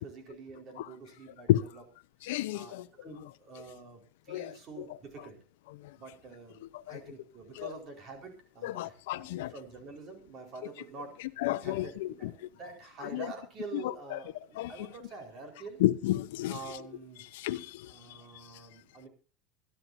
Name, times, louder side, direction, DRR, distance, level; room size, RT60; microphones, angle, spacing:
voice 1, 0.0-1.8 2.5-5.4 6.0-6.6 6.9-11.2 11.6-15.8 16.5-17.3 17.9-19.1, right 4 dB, 30° right, 4.6 m, -47 dB
voice 2, 2.2-2.8 4.3-4.5 5.8-5.9 6.7-7.0 7.6-7.7 8.6-9.5 11.4-12.3 13.1-13.3 13.8-14.2 14.6-14.7 15.8-16.6 17.3-18.5, left 14 dB, 85° left, 0.8 m, -31 dB
24.0 x 11.5 x 2.8 m
cardioid pair, 175°, 0 cm